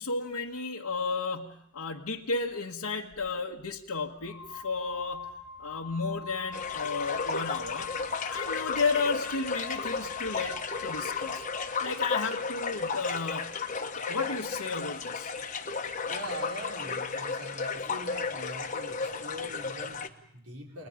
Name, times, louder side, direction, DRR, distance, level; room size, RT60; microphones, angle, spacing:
voice 1, 0.0-5.3 5.6-8.0 8.2-11.4 11.8-13.5 13.9-15.3, left 4 dB, 90° left, -2 dB, 1.4 m, -33 dB
sound 1, 3.1-3.3 4.1-11.8, left 6 dB, 20° right, 3.8 m, -43 dB
sound 2, 6.5-20.1, left 5 dB, 35° left, 1.2 m, -34 dB
voice 2, 16.1-20.9, equal, 90° right, -1 dB, 5.2 m, -42 dB
30.0 x 20.5 x 5.1 m, 0.71 s
head